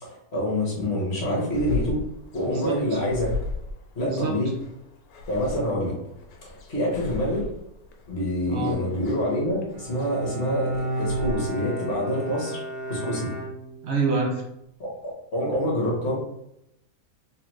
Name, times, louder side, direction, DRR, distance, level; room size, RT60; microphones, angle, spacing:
voice 1, 0.0-2.0 2.3-3.3 3.9-4.5 5.3-5.9 6.4-7.5 8.1-12.6 12.9-13.3 14.8-14.9 15.3-16.2, equal, 45° left, -3 dB, 1.5 m, -26 dB
sound 1, 1.5-11.3, left 4 dB, 80° left, 1.1 m, -36 dB
voice 2, 2.4-3.0 4.1-4.3 8.5-8.8 13.8-14.4, right 3 dB, 55° right, 1 dB, 0.9 m, -27 dB
Bowed string instrument, 9.7-14.1, right 1 dB, 80° right, 1.4 m, -32 dB
3.9 x 3.4 x 3.0 m, 0.81 s
omnidirectional pair, 1.6 m